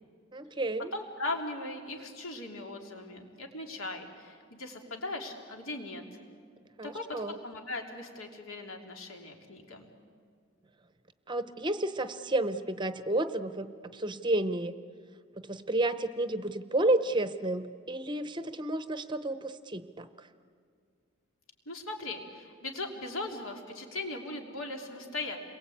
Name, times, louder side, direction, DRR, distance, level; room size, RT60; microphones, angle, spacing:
voice 1, 0.3-0.9 6.8-7.4 11.3-14.7 15.4-20.3, right 2 dB, 20° right, 11 dB, 0.7 m, -31 dB
voice 2, 0.9-6.0 6.8-9.9 21.6-25.4, left 2 dB, 85° left, 3 dB, 3.1 m, -39 dB
30.0 x 22.5 x 8.6 m, 2.1 s
head